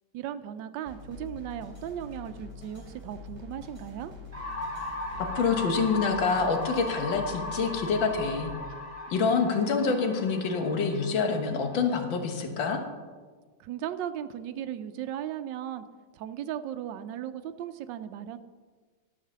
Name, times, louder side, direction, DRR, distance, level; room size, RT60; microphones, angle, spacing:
voice 1, 0.1-4.1 13.6-15.8 16.1-18.4, right 10 dB, 75° right, 10 dB, 1.3 m, -36 dB
sound 1, 0.9-8.5, left 4 dB, 20° left, 2.9 m, -45 dB
sound 2, 4.3-12.2, left 2 dB, 30° right, 3.2 m, -38 dB
voice 2, 5.2-8.5 9.1-12.8, left 5 dB, 85° left, 5 dB, 1.9 m, -26 dB
12.0 x 5.7 x 6.8 m, 1.5 s
omnidirectional pair, 2.0 m